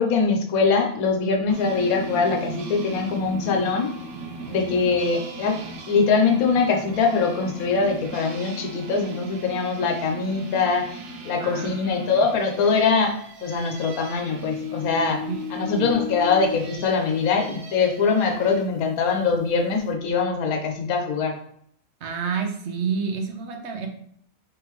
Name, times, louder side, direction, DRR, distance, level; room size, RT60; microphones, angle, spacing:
voice 1, 0.0-3.9 4.5-10.9 11.2-13.1 13.4-15.2 15.5-21.3, left 4 dB, 85° left, 3 dB, 1.2 m, -22 dB
sound 1, 1.5-18.7, equal, 85° right, 1.2 m, -37 dB
voice 2, 11.4-12.3 15.3-15.9 22.0-23.9, right 5 dB, 60° right, 3 dB, 0.9 m, -29 dB
3.6 x 3.5 x 3.0 m, 0.66 s
omnidirectional pair, 1.5 m